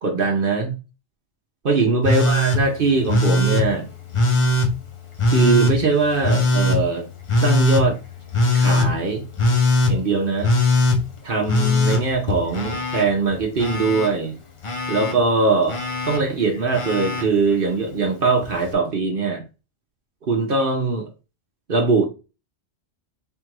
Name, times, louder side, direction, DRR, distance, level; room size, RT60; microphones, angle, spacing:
voice 1, 0.0-0.7 1.6-3.9 5.3-7.1 7.4-8.0 8.5-9.2 9.9-10.5 11.2-14.4 14.9-15.8 16.1-19.4 20.3-21.1 21.7-22.0, right 3 dB, 50° right, 2 dB, 1.0 m, -21 dB
Telephone, 2.0-2.6 3.1-3.6 4.1-4.7 5.2-5.7 6.2-6.8 7.3-7.8 8.3-8.9 9.4-9.9 10.4-11.0 11.5-13.0 13.3-14.1 14.6-15.1 15.7-16.2 16.7-17.2 18.4-18.5, left 2 dB, 30° left, 0.7 m, -20 dB
3.6 x 2.5 x 4.5 m, 0.29 s
omnidirectional pair, 1.2 m